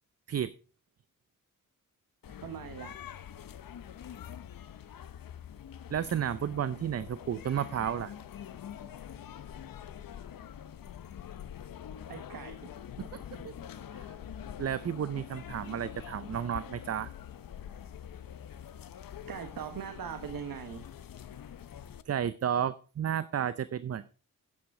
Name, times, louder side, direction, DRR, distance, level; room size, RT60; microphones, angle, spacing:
sound 1, 2.2-22.0, left 9 dB, 80° left, 0.8 m, -45 dB
voice 1, 2.4-3.0 12.1-12.6 19.3-20.8, right 8 dB, 85° right, 7 dB, 1.2 m, -40 dB
voice 2, 5.9-8.1 13.4-13.5 13.9-14.1 14.6-17.1 22.1-24.1, right 9 dB, 45° right, 15 dB, 0.5 m, -32 dB
9.6 x 8.9 x 4.8 m, 0.37 s
wide cardioid pair, 120°, 34 cm